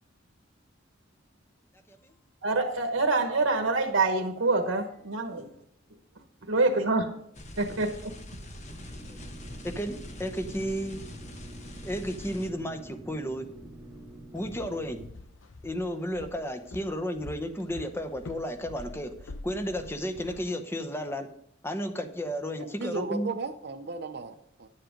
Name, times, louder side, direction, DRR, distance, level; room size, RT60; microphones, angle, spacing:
voice 1, 2.4-5.5 6.4-7.2 7.6-8.1, right 3 dB, 80° right, 1.2 m, -26 dB
voice 2, 6.6-6.9 9.1-9.2 9.6-11.0 11.8-13.5 14.3-15.0 15.6-21.3 21.6-23.3, equal, 10° left, 0.8 m, -33 dB
sound 1, 7.3-12.5, left 1 dB, 35° left, 1.1 m, -44 dB
sound 2, 8.7-15.1, right 1 dB, 5° right, 1.4 m, -47 dB
Walk footsteps, 14.4-20.5, left 2 dB, 75° left, 0.8 m, -46 dB
voice 3, 22.6-24.7, right 3 dB, 55° right, 0.6 m, -35 dB
10.5 x 7.6 x 5.1 m
head